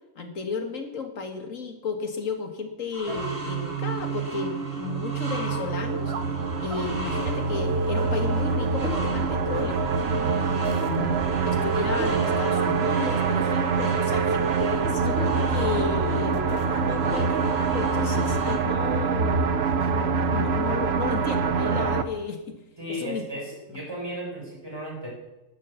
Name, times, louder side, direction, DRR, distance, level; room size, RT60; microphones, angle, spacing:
voice 1, 0.2-6.1 6.6-9.8 10.4-19.5 19.9-22.6 22.9-23.2, left 4 dB, 85° left, 6 dB, 2.1 m, -33 dB
sound 1, 2.9-18.6, equal, 75° right, 3.6 m, -38 dB
sound 2, 3.1-22.0, right 5 dB, 60° right, 1.0 m, -25 dB
voice 2, 22.8-25.1, right 1 dB, 20° right, -4 dB, 6.2 m, -35 dB
12.0 x 11.0 x 7.1 m, 0.99 s
omnidirectional pair, 1.3 m